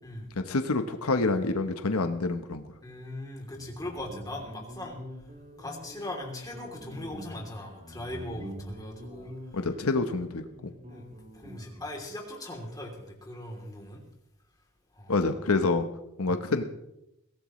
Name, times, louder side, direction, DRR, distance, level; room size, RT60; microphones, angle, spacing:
voice 1, 0.5-2.6 9.5-10.7 15.1-15.9 16.2-16.6, left 3 dB, 90° left, 8 dB, 1.0 m, -27 dB
voice 2, 2.8-5.0 5.6-9.7 10.9-14.0 14.9-15.3 16.2-16.4, left 1 dB, 20° left, 0 dB, 3.1 m, -40 dB
Guitar, 3.5-12.0, equal, 40° right, 5.1 m, -45 dB
22.5 x 17.0 x 3.2 m, 0.86 s
head